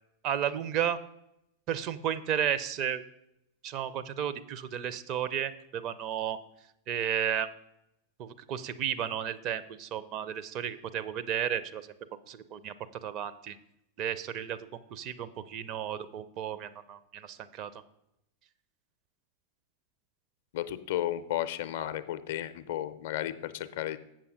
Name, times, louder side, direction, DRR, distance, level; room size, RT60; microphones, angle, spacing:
voice 1, 0.2-1.0 1.7-3.0 3.6-6.4 6.9-7.5 8.2-11.9 12.3-12.7 13.0-13.6 14.0-17.7, right 9 dB, 40° right, 12 dB, 0.5 m, -33 dB
voice 2, 20.5-24.0, left 12 dB, 55° left, 12 dB, 0.5 m, -33 dB
7.4 x 7.0 x 5.0 m, 0.81 s
figure-of-eight pair, 90°, 0 cm